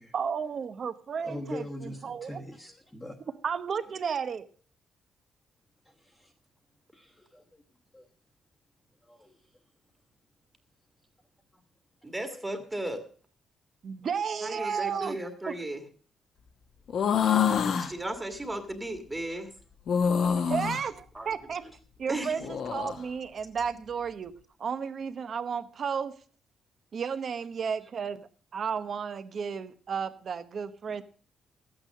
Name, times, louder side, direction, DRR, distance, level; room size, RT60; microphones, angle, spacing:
voice 1, 0.1-2.4 3.4-4.5 13.8-15.2 15.5-15.6 20.5-21.6 22.0-24.3 24.6-26.1 26.9-28.3 28.5-31.0, right 6 dB, 45° right, 12 dB, 0.9 m, -33 dB
voice 2, 1.2-3.2 6.0-6.3 6.9-7.6 7.9-8.0 9.1-9.3 12.3-12.4 19.3-19.4, left 1 dB, 10° left, -2 dB, 1.3 m, -42 dB
voice 3, 12.0-13.0 14.4-15.8 16.9-19.5 20.4-20.6 21.1-21.3 22.1-22.3, right 1 dB, 10° right, 5 dB, 1.8 m, -36 dB
sound 1, 16.9-17.9 19.9-20.8 22.3-23.0, left 7 dB, 55° left, 1.1 m, -26 dB
13.5 x 8.9 x 6.4 m, 0.42 s
cardioid pair, 160°, 0 cm